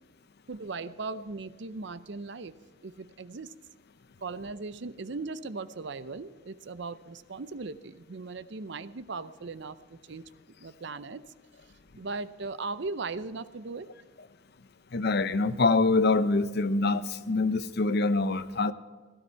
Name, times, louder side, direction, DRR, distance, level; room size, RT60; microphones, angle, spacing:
voice 1, 0.5-2.5 2.8-3.5 4.2-10.3 10.6-11.2 12.0-13.9, right 3 dB, 65° right, 0.7 m, -38 dB
voice 2, 14.9-18.7, left 3 dB, 55° left, 0.7 m, -25 dB
16.5 x 13.0 x 4.6 m
head